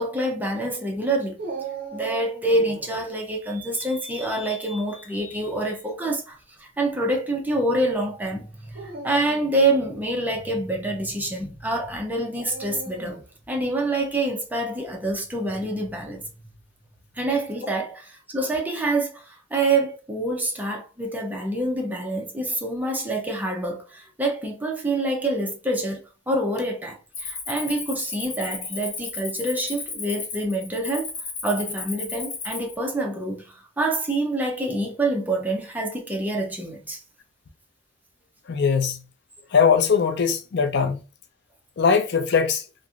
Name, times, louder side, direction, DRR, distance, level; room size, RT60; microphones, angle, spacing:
voice 1, 0.0-1.4 1.9-13.2 13.5-16.3 17.2-26.0 26.3-31.1 31.4-37.0, right 2 dB, 10° right, 0.6 m, -26 dB
Dog, 1.4-3.1 5.1-5.6 6.4-6.5 8.6-9.9 12.4-13.4, right 5 dB, 55° right, 0.7 m, -37 dB
Cricket, 27.1-32.7, left 4 dB, 80° left, 0.8 m, -34 dB
voice 2, 38.5-39.0 39.5-41.0 41.8-42.6, left 6 dB, 60° left, 0.4 m, -20 dB
2.9 x 2.6 x 2.4 m
head